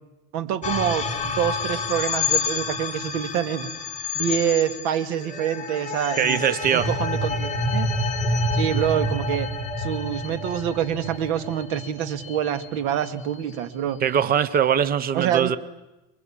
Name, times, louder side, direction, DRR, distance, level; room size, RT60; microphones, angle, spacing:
voice 1, 0.3-3.7 4.1-6.4 6.7-7.9 8.6-9.5 9.8-14.0 15.1-15.5, right 10 dB, 65° right, 11 dB, 2.2 m, -26 dB
sound 1, 0.6-13.1, left 3 dB, 15° left, 2.6 m, -28 dB
voice 2, 6.2-6.9 14.0-15.6, right 8 dB, 20° right, 16 dB, 0.8 m, -21 dB
26.0 x 22.5 x 8.8 m, 0.99 s
cardioid pair, 155°, 40 cm